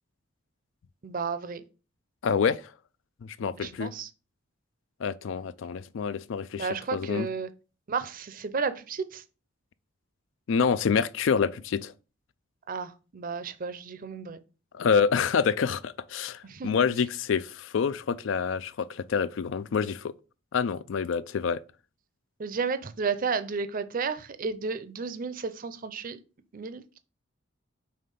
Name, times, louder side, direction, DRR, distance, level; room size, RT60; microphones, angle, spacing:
voice 1, 1.0-1.6 3.6-4.1 6.5-7.5 7.9-9.2 12.7-14.4 16.4-16.8 22.4-26.2 26.5-27.0, right 5 dB, 45° right, 0.5 m, -32 dB
voice 2, 2.2-2.7 3.2-3.9 5.0-7.3 10.5-11.9 14.7-20.1 20.5-21.6, left 6 dB, 70° left, 0.4 m, -27 dB
5.6 x 3.3 x 5.3 m
head